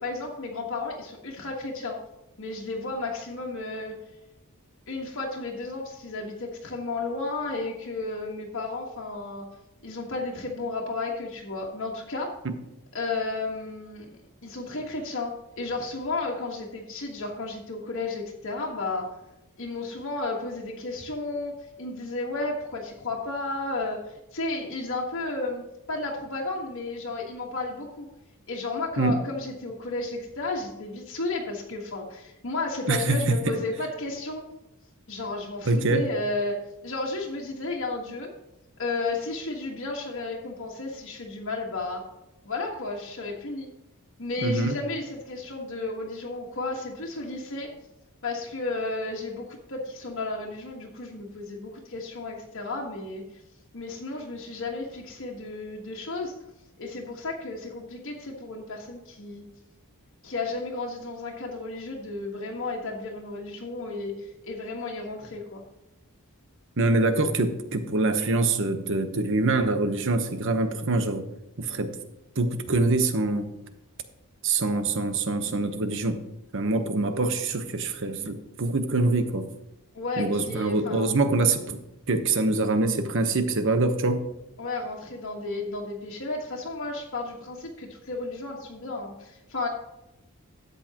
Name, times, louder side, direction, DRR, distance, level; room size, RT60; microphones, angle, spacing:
voice 1, 0.0-2.0 2.4-3.9 4.9-9.5 9.8-12.3 12.9-19.1 19.6-21.5 21.8-28.1 28.5-34.4 35.1-38.3 38.8-42.0 42.4-43.7 44.2-47.7 48.2-53.2 53.7-56.3 56.8-59.4 60.2-65.6 79.9-81.1 84.6-89.7, left 3 dB, 60° left, -2 dB, 1.5 m, -33 dB
voice 2, 35.6-36.0 44.4-44.8 66.8-71.2 71.6-71.9 72.4-73.5 74.4-76.2 76.5-79.5 80.2-81.8 82.1-84.2, right 2 dB, 60° right, 8 dB, 1.0 m, -24 dB
13.0 x 8.3 x 3.0 m, 0.94 s
head